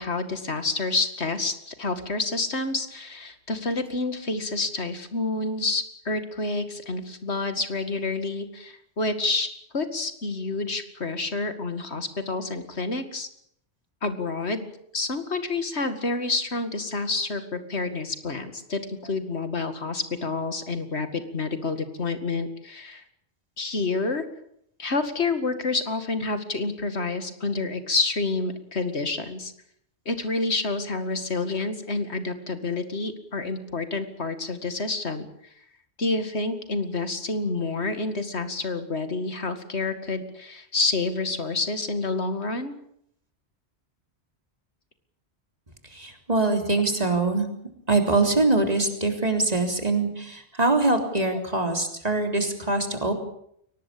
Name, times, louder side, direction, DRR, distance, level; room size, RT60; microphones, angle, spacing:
voice 1, 0.0-13.3 14.0-14.7 14.9-23.0 23.6-24.2 24.8-29.5 30.1-35.3 36.0-42.7 51.3-51.4, left 3 dB, 75° left, 9 dB, 2.5 m, -28 dB
voice 2, 45.9-47.5 47.9-53.1, right 2 dB, 35° right, 5 dB, 3.8 m, -23 dB
23.0 x 18.5 x 8.6 m, 0.71 s
omnidirectional pair, 1.1 m